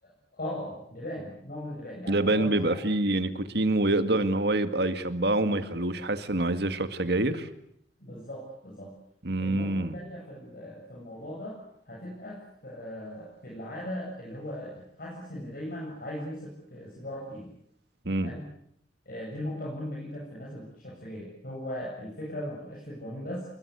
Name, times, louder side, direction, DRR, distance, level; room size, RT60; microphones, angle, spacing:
voice 1, 0.0-2.6 8.0-8.9 9.4-11.6 11.9-17.5 18.1-18.5 19.1-23.5, left 1 dB, 55° left, -3 dB, 7.9 m, -38 dB
voice 2, 2.1-7.5 9.2-10.0 18.0-18.3, right 2 dB, 65° right, 10 dB, 2.1 m, -26 dB
28.0 x 22.0 x 8.3 m, 0.71 s
head